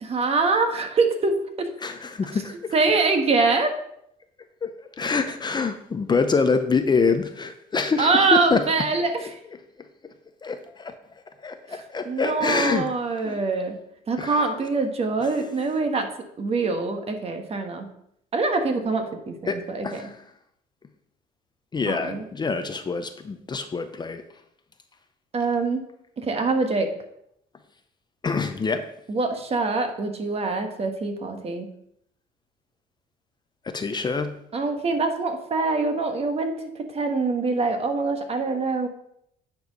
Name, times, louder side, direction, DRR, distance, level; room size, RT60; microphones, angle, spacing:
voice 1, 0.0-1.7 2.7-3.7 8.0-9.1 11.7-11.8 12.0-13.8 14.1-16.1 16.4-17.9 18.3-20.1 21.9-22.2 25.3-25.8 26.2-26.9 29.1-31.7 34.5-36.6 36.9-38.9, right 3 dB, 35° right, 5 dB, 1.4 m, -24 dB
voice 2, 1.8-2.7 4.6-4.7 5.0-8.6 10.4-10.9 11.4-12.9 13.2-13.4 14.2-14.4 19.5-20.1 21.7-24.2 28.2-28.8 33.7-34.3, left 4 dB, 25° left, 8 dB, 0.6 m, -25 dB
9.3 x 4.6 x 5.3 m, 0.74 s
cardioid pair, 110°, 17 cm